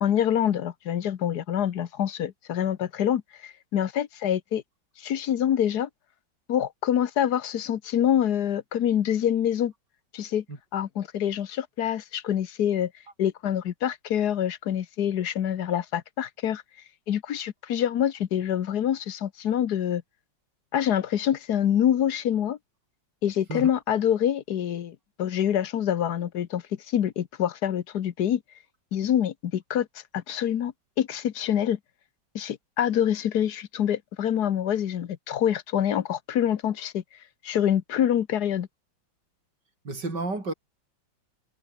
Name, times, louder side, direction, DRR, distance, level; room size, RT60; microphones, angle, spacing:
voice 1, 0.0-4.6 5.0-5.9 6.5-9.7 10.1-10.4 10.7-12.9 13.2-16.6 17.1-20.0 20.7-22.6 23.2-28.4 28.9-29.9 30.1-31.8 32.3-37.0 37.4-38.7, left 10 dB, 60° left, 1.5 m, -26 dB
voice 2, 39.8-40.5, right 3 dB, 60° right, 6.5 m, -31 dB
omnidirectional pair, 2.1 m